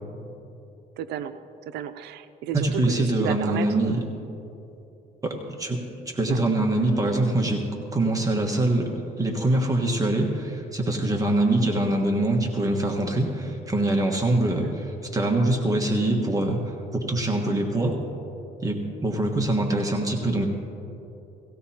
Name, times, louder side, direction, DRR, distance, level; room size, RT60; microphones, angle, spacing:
voice 1, 1.0-1.4 1.7-4.0 6.3-6.4 14.4-14.8, right 10 dB, 80° right, 10 dB, 0.6 m, -33 dB
voice 2, 2.5-4.0 5.2-18.0 18.6-20.5, right 1 dB, 20° right, 1 dB, 1.4 m, -24 dB
18.5 x 16.0 x 2.9 m, 3.0 s
cardioid pair, 110°, 17 cm